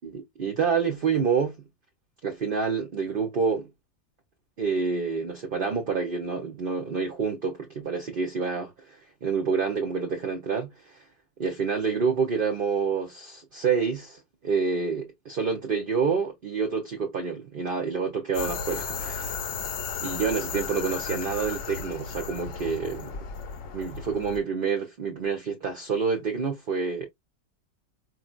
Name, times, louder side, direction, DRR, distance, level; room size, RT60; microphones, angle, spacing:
voice 1, 0.0-1.6 2.2-3.7 4.6-11.0 11.4-19.4 20.0-23.2 23.7-27.1, right 5 dB, 50° right, 0.7 m, -28 dB
sound 1, 18.3-24.4, left 6 dB, 65° left, 0.9 m, -34 dB
4.2 x 2.5 x 2.3 m
omnidirectional pair, 1.6 m